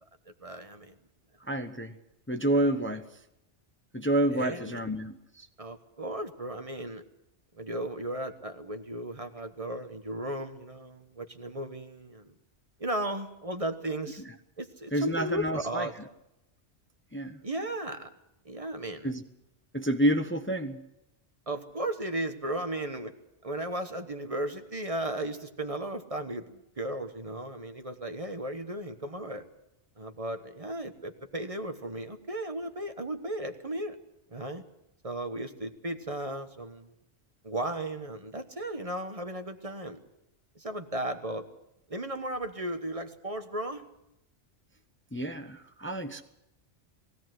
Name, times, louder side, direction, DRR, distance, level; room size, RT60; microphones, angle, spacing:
voice 1, 0.4-0.9 4.3-4.8 5.6-7.0 7.5-12.3 12.8-14.2 14.6-15.9 17.4-18.1 18.4-19.1 21.5-23.1 23.4-29.4 30.0-34.0 34.3-34.6 35.0-36.9 37.4-40.0 40.5-41.5 41.9-43.8, right 1 dB, 30° right, 7 dB, 1.2 m, -35 dB
voice 2, 1.5-1.9 2.3-3.1 3.9-5.5 14.9-15.9 17.1-17.4 19.0-19.2 19.7-20.8 45.1-46.2, right 1 dB, 10° left, 8 dB, 0.8 m, -29 dB
20.0 x 16.5 x 7.7 m, 0.87 s
omnidirectional pair, 1.2 m